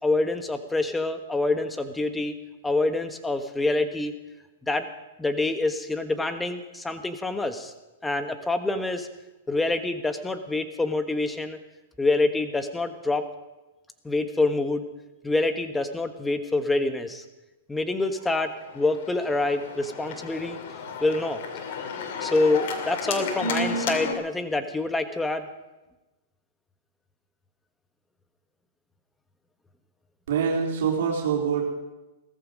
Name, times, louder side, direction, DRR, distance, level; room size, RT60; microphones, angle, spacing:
voice 1, 0.0-2.3 2.6-4.1 4.6-4.8 5.2-7.7 8.0-9.1 9.5-11.6 12.0-13.2 14.0-14.8 15.2-17.2 17.7-20.6 21.0-21.4 22.2-25.5, left 2 dB, 10° left, 8 dB, 1.4 m, -26 dB
Organ, 18.3-24.1, left 3 dB, 60° left, 2.5 m, -32 dB
voice 2, 30.3-31.6, right 6 dB, 70° right, -1 dB, 3.7 m, -25 dB
18.0 x 14.5 x 5.3 m, 1.1 s
hypercardioid pair, 130°, 0 cm